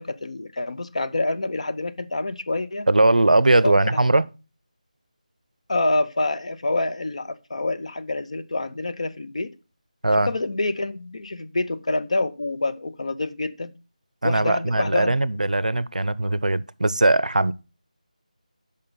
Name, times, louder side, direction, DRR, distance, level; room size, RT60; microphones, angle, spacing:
voice 1, 0.0-2.9 3.6-4.0 5.7-9.5 10.2-13.7 14.2-15.2, left 2 dB, 55° left, 0.7 m, -27 dB
voice 2, 2.9-4.2 10.0-10.3 14.2-17.5, right 2 dB, 75° right, 0.5 m, -20 dB
6.6 x 5.4 x 5.6 m
figure-of-eight pair, 160°, 4 cm